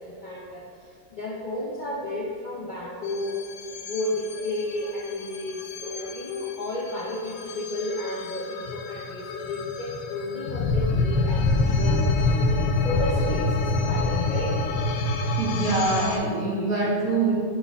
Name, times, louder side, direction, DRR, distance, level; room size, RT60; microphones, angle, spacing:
voice 1, 0.0-3.4 3.7-12.3 12.6-14.6, left 2 dB, 50° left, -5 dB, 0.6 m, -32 dB
sound 1, 3.1-16.2, left 2 dB, 80° left, 1.2 m, -27 dB
voice 2, 15.4-17.3, right 3 dB, 60° right, -8 dB, 2.1 m, -24 dB
6.3 x 4.4 x 3.4 m, 2.3 s
omnidirectional pair, 1.7 m